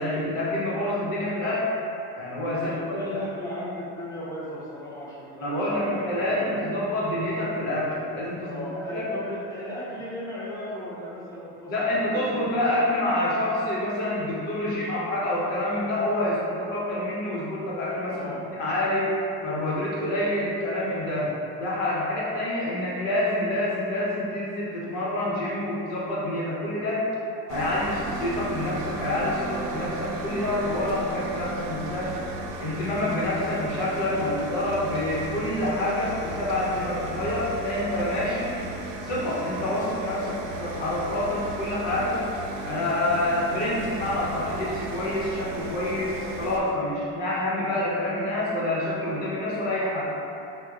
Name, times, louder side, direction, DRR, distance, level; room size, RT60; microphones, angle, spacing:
voice 1, 0.0-1.8 2.2-3.2 5.4-8.6 8.9-9.1 11.7-19.1 19.4-21.3 21.6-27.1 27.5-32.2 32.6-38.5 39.0-42.2 42.6-50.0, left 1 dB, 90° left, -6 dB, 1.0 m, -27 dB
voice 2, 2.6-6.7 8.4-11.7 12.1-12.5 18.0-18.6 34.0-34.7, left 1 dB, 10° left, -8 dB, 0.7 m, -36 dB
sound 1, 27.5-46.6, right 2 dB, 85° right, 0.5 m, -35 dB
4.2 x 2.2 x 2.4 m, 2.6 s
supercardioid pair, 120°, 36 cm